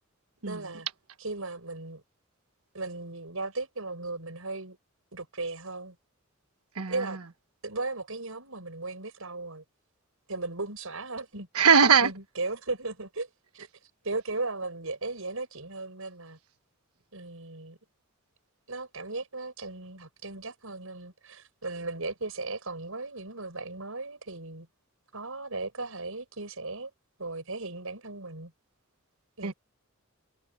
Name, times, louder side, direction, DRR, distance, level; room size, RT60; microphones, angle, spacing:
voice 1, 0.5-0.9 1.2-2.0 2.7-4.8 5.1-6.0 6.9-7.2 7.6-9.6 10.3-11.5 12.0-13.3 13.5-13.7 14.0-16.4 17.1-17.8 18.7-24.7 25.1-26.9 27.2-28.5 29.4-29.5, right 3 dB, 70° right, 6.2 m, -36 dB
voice 2, 6.7-7.2 11.5-12.1 29.4-29.5, right 6 dB, 90° right, 1.3 m, -21 dB
head